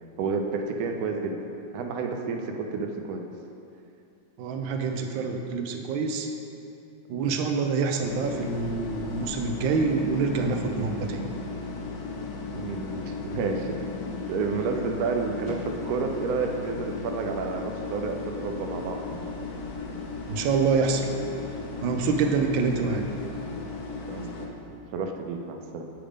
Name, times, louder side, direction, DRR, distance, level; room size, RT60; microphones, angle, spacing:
voice 1, 0.2-1.4 1.7-3.2 12.5-13.7 14.3-19.0 22.3-22.4 24.1-25.8, right 4 dB, 70° right, 3 dB, 0.9 m, -30 dB
voice 2, 4.4-6.3 7.1-11.2 20.3-21.1 21.8-23.1, right 4 dB, 85° right, 4 dB, 1.4 m, -26 dB
sound 1, 8.0-24.5, left 4 dB, 65° left, 1.1 m, -36 dB
8.7 x 3.5 x 5.0 m, 2.7 s
omnidirectional pair, 2.0 m